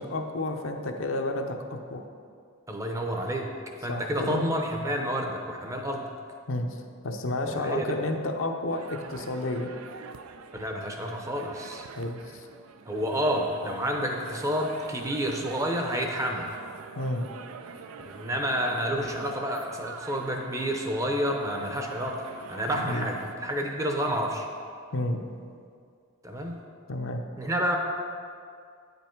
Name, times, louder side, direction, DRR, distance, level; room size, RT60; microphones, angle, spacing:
voice 1, 0.0-2.1 3.9-4.4 6.5-6.7 7.0-9.7 11.9-12.5 17.0-17.3 22.8-23.0 24.9-25.2 26.9-27.2, left 2 dB, 65° left, 4 dB, 0.7 m, -31 dB
voice 2, 2.7-3.5 3.8-6.1 7.5-8.0 10.5-11.9 12.9-16.5 18.1-22.2 22.5-24.5 26.2-26.6 27.4-27.8, equal, 15° right, 2 dB, 0.6 m, -29 dB
sound 1, 8.7-23.4, right 5 dB, 85° right, 0.4 m, -44 dB
8.8 x 5.3 x 4.5 m, 2.2 s
head